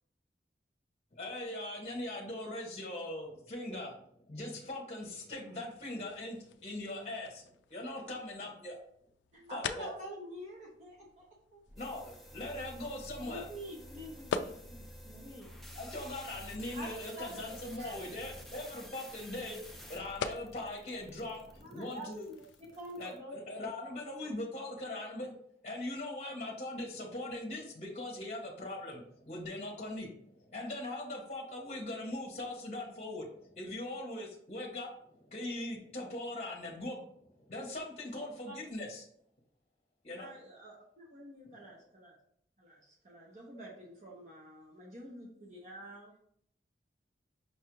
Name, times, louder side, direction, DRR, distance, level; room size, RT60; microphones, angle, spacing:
voice 1, 1.1-8.8 9.5-9.9 11.8-13.5 15.7-22.3 23.0-25.3 25.6-39.1 40.0-40.3, left 1 dB, 35° left, 1 dB, 0.8 m, -41 dB
sound 1, 5.4-23.0, left 5 dB, 90° left, 0.3 m, -47 dB
voice 2, 9.3-11.6 13.3-15.5 16.7-16.9 17.1-17.6 21.6-22.3 22.6-23.7 24.2-24.3 26.3-26.4 38.5-38.6 40.1-42.2 42.6-46.1, right 1 dB, 40° right, -3 dB, 0.7 m, -48 dB
sound 2, 11.7-21.6, equal, 60° right, 1.0 m, -53 dB
sound 3, 11.8-23.2, equal, ahead, 0.3 m, -53 dB
voice 3, 16.4-17.0 17.7-18.0 43.2-43.8 44.8-44.9, right 1 dB, 80° right, -7 dB, 1.3 m, -59 dB
5.4 x 2.3 x 3.0 m, 0.67 s
head